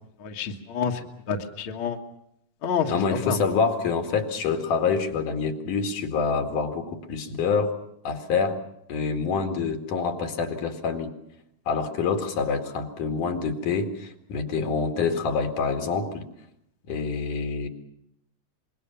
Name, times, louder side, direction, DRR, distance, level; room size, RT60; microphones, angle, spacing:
voice 1, 0.2-2.0 2.6-3.4, left 6 dB, 45° left, 3 dB, 2.1 m, -29 dB
voice 2, 2.9-7.8 8.1-8.6 8.9-11.1 11.7-16.3 16.9-17.7, left 5 dB, 70° left, 6 dB, 3.6 m, -26 dB
25.5 x 22.0 x 7.0 m, 0.75 s
omnidirectional pair, 3.8 m